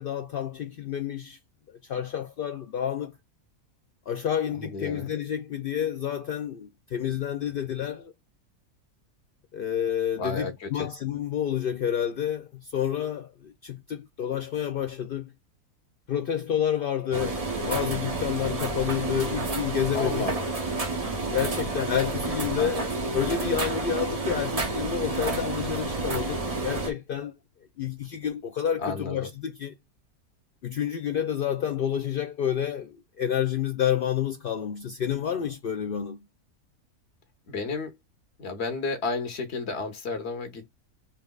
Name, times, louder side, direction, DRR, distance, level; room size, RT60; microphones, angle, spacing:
voice 1, 0.0-1.4 1.9-3.1 4.1-8.1 9.5-15.3 16.1-20.3 21.3-27.3 27.8-29.7 30.6-36.2, left 9 dB, 70° left, 0.5 m, -29 dB
voice 2, 4.6-5.1 10.1-10.9 19.9-20.4 22.6-22.8 28.8-29.3 37.5-37.9 38.4-40.7, left 3 dB, 50° left, 1.4 m, -32 dB
sound 1, 17.1-26.9, right 3 dB, 30° right, 0.8 m, -30 dB
5.7 x 3.2 x 2.3 m
omnidirectional pair, 1.5 m